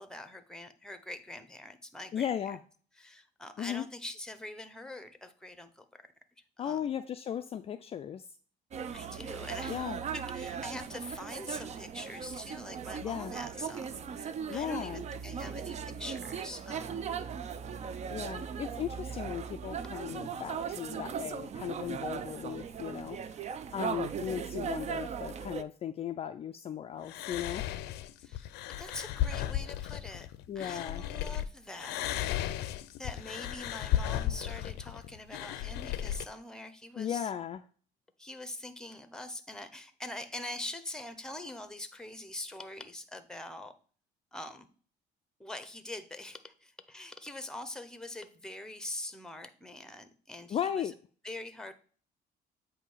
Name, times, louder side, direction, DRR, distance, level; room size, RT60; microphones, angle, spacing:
voice 1, 0.0-2.6 3.0-5.8 6.6-6.9 8.9-17.1 28.2-28.5 28.8-30.3 30.5-32.7 33.0-37.3 38.2-43.7 44.3-44.7 45.4-50.9 51.2-51.7, left 1 dB, 5° left, 10 dB, 0.8 m, -44 dB
voice 2, 2.1-2.6 3.6-3.9 6.6-8.3 9.7-10.0 13.0-13.4 14.5-15.0 18.1-27.7 30.5-31.0 37.0-37.6 50.5-50.9, left 9 dB, 35° left, 8 dB, 0.3 m, -36 dB
sound 1, 8.7-25.6, right 7 dB, 40° right, 0.5 m, -38 dB
sound 2, 27.1-31.4 31.8-36.3, left 12 dB, 85° left, 0.5 m, -35 dB
8.2 x 2.7 x 5.5 m, 0.43 s
cardioid pair, 110°, 17 cm